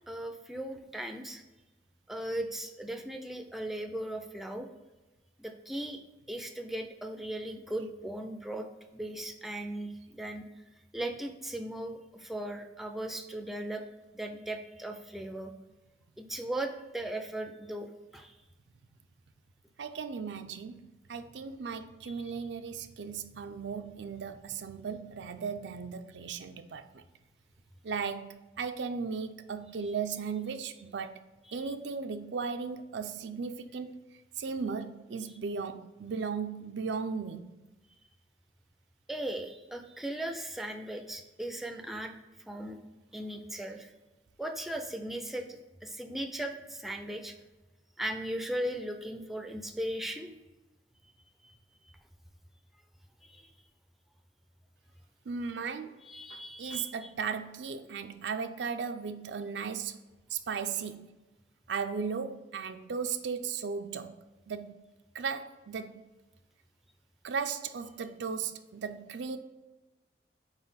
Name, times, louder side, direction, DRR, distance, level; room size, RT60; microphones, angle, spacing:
voice 1, 0.1-1.4 2.1-4.7 5.4-6.0 6.3-8.7 8.9-10.5 10.9-13.9 14.1-15.5 16.2-18.4 22.0-22.1 29.9-30.0 31.5-31.7 39.1-42.1 42.5-42.8 43.1-43.9 44.4-47.3 48.0-50.3 51.4-51.5 53.2-53.5 56.0-57.1, right 1 dB, ahead, 0.4 m, -38 dB
voice 2, 19.8-27.0 27.8-31.1 31.5-34.0 34.4-37.4 55.3-55.9 56.3-60.0 60.3-61.1 61.7-64.1 64.5-64.8 65.1-65.9 67.2-69.4, right 5 dB, 90° right, 0.5 m, -36 dB
4.7 x 4.1 x 5.5 m
head